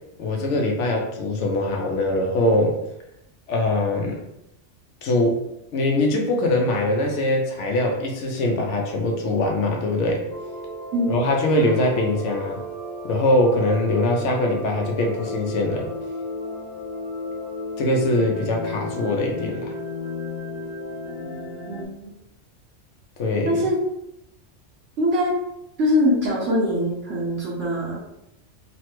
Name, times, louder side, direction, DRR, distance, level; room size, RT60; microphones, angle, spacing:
voice 1, 0.2-2.8 3.5-4.2 5.0-5.4 5.7-10.2 11.1-12.6 13.0-15.9 17.8-19.7 23.2-23.6, left 1 dB, 80° left, 1 dB, 0.9 m, -22 dB
sound 1, 10.3-21.9, left 2 dB, 55° left, 0.7 m, -34 dB
voice 2, 21.7-22.1 23.4-23.8 25.0-25.3 25.8-28.0, left 1 dB, 75° right, -7 dB, 1.1 m, -22 dB
3.2 x 2.1 x 3.0 m, 0.83 s
omnidirectional pair, 1.2 m